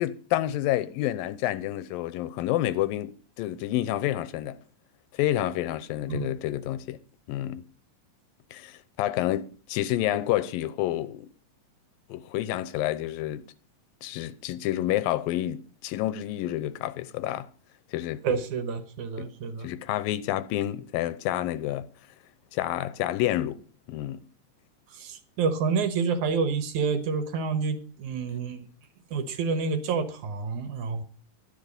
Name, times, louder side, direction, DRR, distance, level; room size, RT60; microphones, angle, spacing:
voice 1, 0.0-3.1 3.4-4.6 5.1-7.0 7.3-7.6 8.5-11.3 12.1-13.4 14.0-17.5 17.9-18.2 19.2-19.3 19.6-21.9 22.5-23.6 23.9-24.2, left 14 dB, 90° left, 2.5 m, -29 dB
voice 2, 18.2-19.7 24.9-28.6 29.1-31.0, right 5 dB, 65° right, 2.4 m, -28 dB
12.0 x 11.0 x 5.3 m
omnidirectional pair, 4.0 m